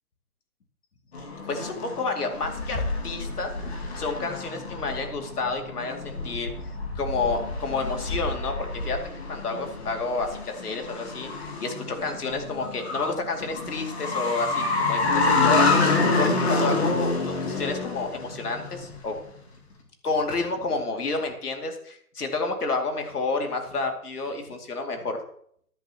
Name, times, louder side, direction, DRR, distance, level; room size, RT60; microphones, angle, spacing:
sound 1, 1.1-19.2, left 3 dB, 45° left, 2.0 m, -28 dB
voice 1, 1.5-6.5 7.0-8.5 8.8-9.0 9.3-15.7 16.2-19.2 20.0-25.2, left 3 dB, 80° left, 3 dB, 2.6 m, -30 dB
15.0 x 10.5 x 3.0 m, 0.66 s
hypercardioid pair, 170°, 45 cm